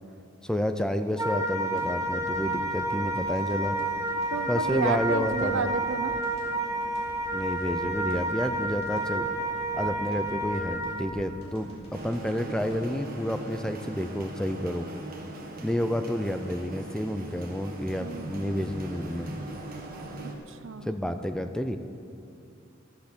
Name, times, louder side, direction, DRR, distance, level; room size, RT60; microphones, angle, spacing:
voice 1, 0.4-3.8 4.5-5.7 7.3-9.3 9.7-14.9 15.6-19.4 20.8-21.8, equal, 5° left, 8 dB, 0.4 m, -30 dB
Wind instrument woodwind instrument, 1.2-11.0, right 1 dB, 15° right, 1.0 m, -30 dB
sound 1, 1.8-14.0 14.4-14.5, equal, 30° left, 2.9 m, -47 dB
voice 2, 4.3-6.1 18.0-18.3 20.2-20.9, right 4 dB, 65° right, 11 dB, 0.6 m, -31 dB
sound 2, 11.9-20.3, right 2 dB, 45° right, 1.5 m, -40 dB
13.5 x 8.0 x 6.7 m, 2.5 s
head